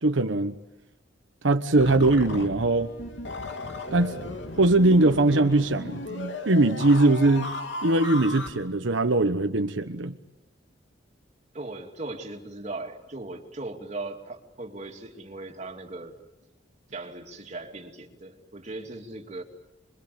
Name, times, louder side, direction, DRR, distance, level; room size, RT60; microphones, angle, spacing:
voice 1, 0.0-0.5 1.4-2.9 3.9-4.2 4.6-7.5 7.8-10.2, right 2 dB, 85° right, 7 dB, 1.2 m, -21 dB
sound 1, 1.8-8.5, left 2 dB, 75° left, 2.9 m, -36 dB
voice 2, 11.5-16.2 16.9-19.4, right 2 dB, 40° right, 2 dB, 2.8 m, -38 dB
26.0 x 23.5 x 8.6 m, 0.94 s
head